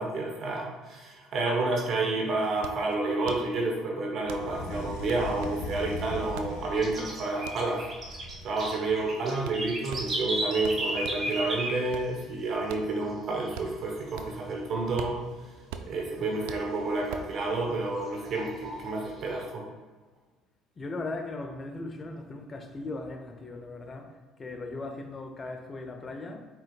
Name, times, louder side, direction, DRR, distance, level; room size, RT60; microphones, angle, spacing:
voice 1, 0.0-7.9 8.4-15.2 15.8-19.6, right 2 dB, 55° right, -1 dB, 1.0 m, -30 dB
sound 1, 2.6-11.3 11.7-14.5 14.8-17.4, right 8 dB, 75° right, 0.3 m, -44 dB
sound 2, 4.2-7.3 7.8-8.7, left 2 dB, 75° left, 0.5 m, -39 dB
sound 3, 4.5-6.0 6.3-12.4 12.7-12.8 13.1-13.6 13.9-15.1 15.4-15.5 15.8-15.9 16.4-17.6 18.0-19.3, right 1 dB, 40° right, 1.3 m, -35 dB
voice 2, 20.8-26.4, left 2 dB, 30° left, 5 dB, 0.6 m, -38 dB
4.5 x 4.3 x 2.3 m, 1.4 s
hypercardioid pair, 70°, 0 cm